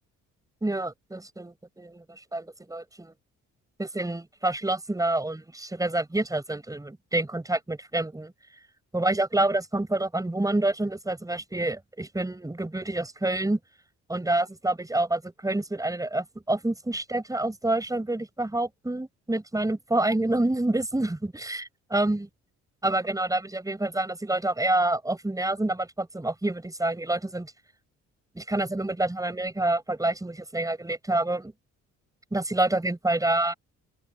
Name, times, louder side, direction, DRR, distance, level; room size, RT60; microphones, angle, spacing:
voice 1, 0.6-3.1 3.8-8.3 8.9-13.6 14.1-22.3 22.8-27.5 28.3-31.5 32.3-33.5, right 2 dB, 10° right, 6.5 m, -27 dB
open air
cardioid pair, 90°, 30 cm